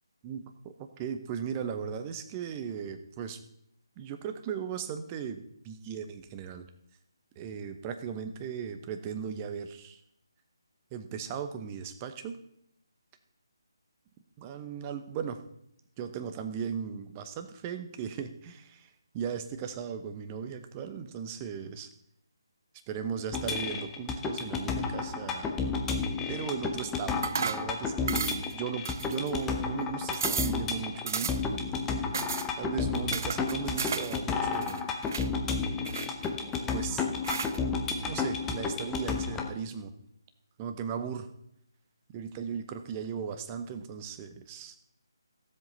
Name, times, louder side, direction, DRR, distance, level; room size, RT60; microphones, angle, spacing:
voice 1, 0.2-3.4 4.0-6.7 7.4-10.0 10.9-12.4 14.4-15.4 16.0-21.9 22.9-25.5 26.3-31.3 32.6-34.8 36.7-37.0 38.0-39.9 40.6-41.3 42.1-44.7, right 7 dB, 20° right, 8 dB, 0.9 m, -37 dB
sound 1, 23.3-39.5, left 4 dB, 10° left, 0.8 m, -32 dB
sound 2, 27.2-27.7 28.1-28.5 28.8-29.5 29.8-29.9 30.1-30.6 31.1-31.5 32.1-32.5 33.1-34.2 34.5-35.3 35.8-36.6 37.2-37.6, right 6 dB, 40° right, 0.4 m, -34 dB
16.5 x 7.7 x 4.0 m, 0.73 s
figure-of-eight pair, 150°, 2 cm